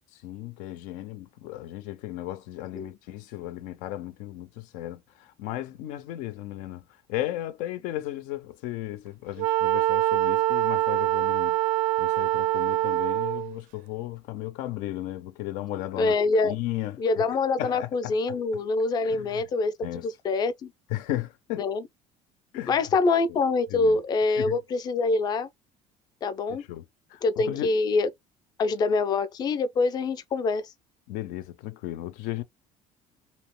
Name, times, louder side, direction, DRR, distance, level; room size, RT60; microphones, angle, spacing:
voice 1, 0.2-6.8 7.1-11.6 12.0-16.1 16.4-17.3 17.6-18.4 19.0-19.4 19.8-20.1 20.9-21.7 22.5-22.8 23.7-24.0 24.4-24.6 26.7-26.8 27.1-27.7 31.1-32.4, left 14 dB, 80° left, 0.5 m, -35 dB
Wind instrument woodwind instrument, 9.4-13.5, right 15 dB, 70° right, 0.4 m, -24 dB
voice 2, 16.0-16.5 17.0-19.7 20.0-20.7 21.6-21.8 22.7-25.5 26.2-26.6 27.2-28.1 28.6-30.6, left 3 dB, 30° left, 0.4 m, -25 dB
2.8 x 2.1 x 3.0 m
cardioid pair, 165°, 13 cm